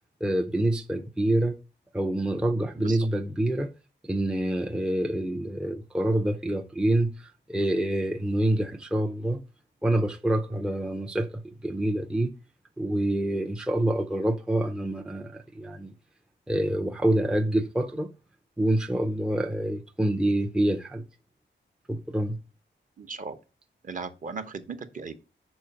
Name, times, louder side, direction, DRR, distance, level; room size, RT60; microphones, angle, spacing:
voice 1, 0.2-1.6 1.9-3.7 4.0-9.4 9.8-12.3 12.8-15.9 16.5-18.1 18.6-21.0 21.9-22.4, right 1 dB, 5° right, 0.4 m, -26 dB
voice 2, 23.0-23.4 23.8-25.1, right 4 dB, 40° right, 0.8 m, -37 dB
6.3 x 4.8 x 5.7 m
wide cardioid pair, 170°, 20 cm